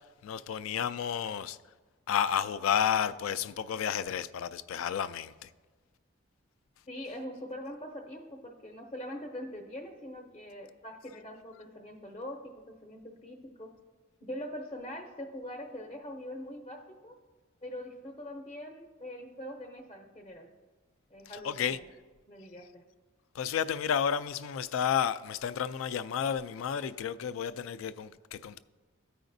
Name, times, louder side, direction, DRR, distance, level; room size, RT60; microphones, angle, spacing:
voice 1, 0.2-1.6 2.1-5.5 21.4-21.8 23.3-28.6, left 8 dB, 75° left, 0.3 m, -31 dB
voice 2, 6.9-13.7 14.2-17.2 17.6-20.5 21.1-21.8 22.3-22.8, left 1 dB, 30° left, 0.6 m, -43 dB
14.0 x 4.9 x 2.6 m
head